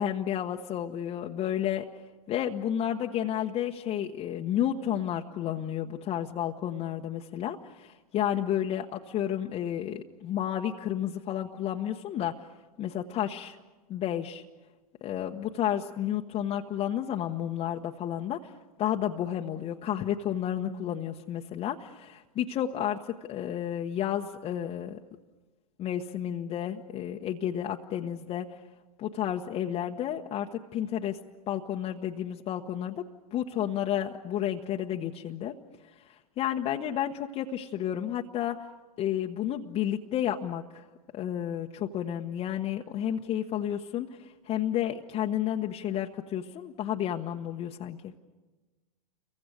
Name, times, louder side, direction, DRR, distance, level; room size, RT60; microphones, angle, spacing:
voice 1, 0.0-1.9 2.3-12.3 12.8-13.6 13.9-14.4 15.0-18.5 18.8-25.0 25.8-28.6 29.0-31.2 31.5-33.0 33.3-35.5 36.0-38.6 39.0-40.8 41.1-48.1, left 10 dB, 30° left, 1 dB, 1.1 m, -31 dB
29.5 x 23.5 x 6.6 m, 1.2 s
hypercardioid pair, 110°, 21 cm